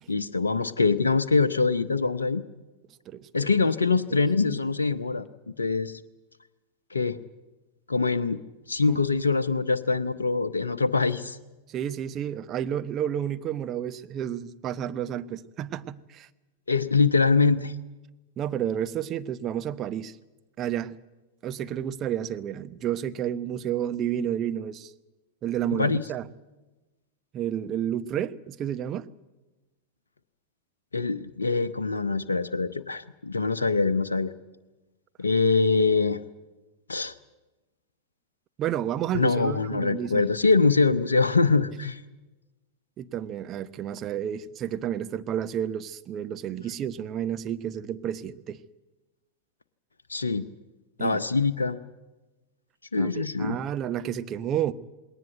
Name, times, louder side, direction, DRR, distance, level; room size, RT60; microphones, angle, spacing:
voice 1, 0.1-2.4 3.3-5.3 5.6-6.0 6.9-7.2 7.9-8.4 8.7-11.4 16.7-17.7 25.7-26.0 30.9-34.3 35.2-36.2 36.9-37.1 39.1-42.0 50.1-50.5 51.0-51.8 52.9-53.6, left 4 dB, 75° left, 12 dB, 0.8 m, -24 dB
voice 2, 3.1-3.5 4.1-4.2 8.9-9.0 11.7-16.3 18.4-20.2 20.6-21.0 21.4-24.9 25.4-26.2 27.3-29.1 38.6-40.2 43.0-48.6 51.0-51.2 53.0-54.7, right 10 dB, 30° right, 11 dB, 0.9 m, -31 dB
20.5 x 18.5 x 9.2 m, 1.1 s
figure-of-eight pair, 90°, 0 cm